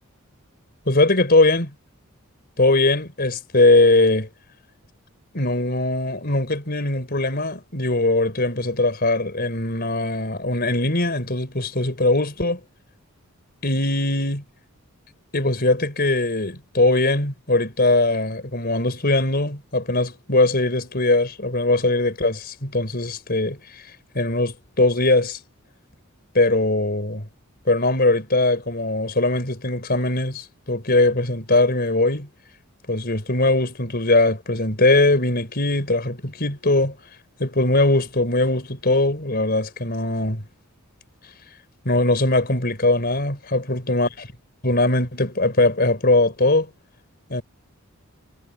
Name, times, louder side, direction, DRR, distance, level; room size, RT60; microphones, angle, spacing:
voice 1, 0.9-1.7 2.6-4.3 5.3-12.6 13.6-14.4 15.3-23.6 24.1-25.4 26.3-27.3 27.7-32.3 32.9-36.9 37.4-40.4 41.8-44.1 44.6-46.7 47.3-47.4, left 2 dB, 45° left, 4.4 m, -20 dB
head